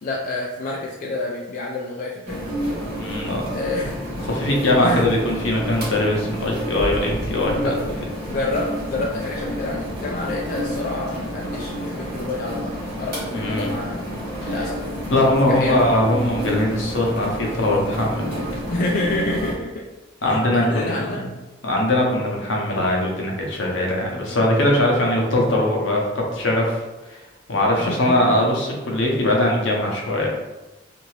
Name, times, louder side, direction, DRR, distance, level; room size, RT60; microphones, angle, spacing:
voice 1, 0.0-2.5 3.5-3.9 4.8-5.2 7.6-7.8 8.3-14.0 14.5-14.8 15.5-15.8 18.7-19.7 20.2-21.2 27.8-28.4, left 2 dB, 45° left, -2 dB, 0.3 m, -28 dB
sound 1, 2.3-19.5, equal, 55° right, 1.0 m, -30 dB
voice 2, 3.0-3.4 4.2-7.8 13.3-13.8 14.4-14.5 15.1-18.4 20.2-21.3 21.6-26.8 27.1-27.2 27.5-30.3, left 1 dB, 70° left, -1 dB, 0.7 m, -21 dB
2.8 x 2.6 x 3.0 m, 1.1 s
head